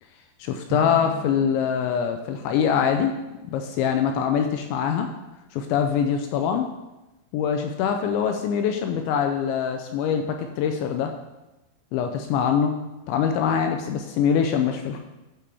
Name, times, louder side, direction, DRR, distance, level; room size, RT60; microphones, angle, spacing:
voice 1, 0.4-3.1 3.4-5.1 5.5-6.7 7.3-11.1 11.9-12.7 13.1-15.0, left 7 dB, 85° left, 5 dB, 2.7 m, -24 dB
Drum, 0.7-2.4, equal, 60° right, 2.5 m, -37 dB
11.0 x 8.8 x 3.5 m, 1.0 s
omnidirectional pair, 5.7 m